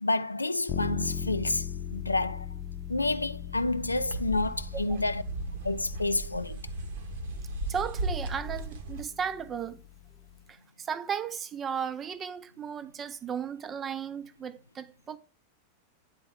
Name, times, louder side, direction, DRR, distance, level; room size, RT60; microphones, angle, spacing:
voice 1, 0.0-2.5 2.9-5.2 5.6-6.6, left 2 dB, 80° left, 0.3 m, -29 dB
sound 1, 0.7-10.4, left 8 dB, 30° left, 0.8 m, -39 dB
sound 2, 3.5-9.0, right 2 dB, 60° right, 0.9 m, -36 dB
voice 2, 7.7-9.8 10.5-15.2, right 7 dB, 25° right, 0.5 m, -35 dB
8.9 x 4.3 x 3.4 m
figure-of-eight pair, 90°, 0 cm